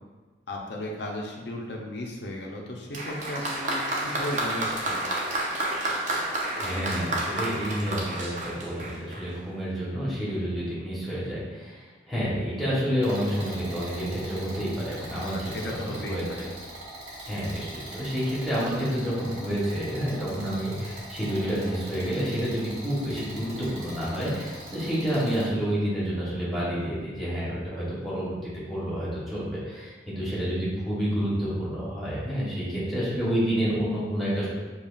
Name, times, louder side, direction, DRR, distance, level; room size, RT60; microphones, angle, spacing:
voice 1, 0.5-5.0 15.3-16.5, left 1 dB, 70° left, 0 dB, 0.6 m, -35 dB
Applause, 2.9-9.4, right 1 dB, 40° right, 0.5 m, -30 dB
voice 2, 6.6-16.2 17.2-34.5, equal, ahead, -9 dB, 1.0 m, -29 dB
sound 1, 13.0-25.4, right 1 dB, 75° right, 1.5 m, -42 dB
5.3 x 2.3 x 2.4 m, 1.3 s
head